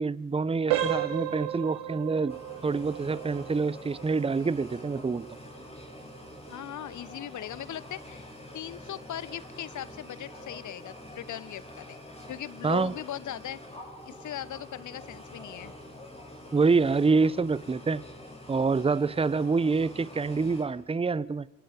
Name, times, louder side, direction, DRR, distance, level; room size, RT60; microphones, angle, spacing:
voice 1, 0.0-2.4 2.6-5.3 12.6-12.9 16.5-18.0 18.5-21.5, right 4 dB, 15° right, 0.8 m, -26 dB
sound 1, 0.7-11.4 11.7-11.9 12.5-12.6 13.1-13.3, right 11 dB, 70° right, 2.5 m, -37 dB
sound 2, 2.3-20.6, left 1 dB, 15° left, 7.5 m, -46 dB
voice 2, 6.5-8.2 8.5-12.0 12.3-13.6 14.0-15.7, left 11 dB, 50° left, 1.2 m, -39 dB
28.0 x 27.5 x 5.3 m
figure-of-eight pair, 50°, 40 cm